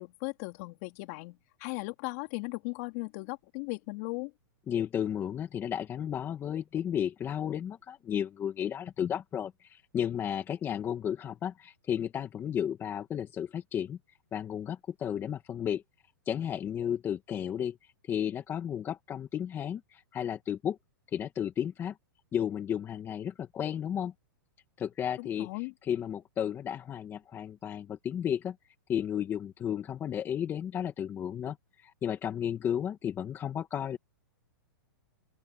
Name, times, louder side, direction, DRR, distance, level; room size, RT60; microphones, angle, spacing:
voice 1, 0.0-4.3 25.2-25.7, left 27 dB, 40° left, 3.5 m, -37 dB
voice 2, 4.7-14.0 14.3-15.8 16.2-20.8 21.1-22.0 22.3-24.1 24.8-28.5 28.9-34.0, left 9 dB, 20° left, 1.7 m, -33 dB
open air
hypercardioid pair, 145°, 12 cm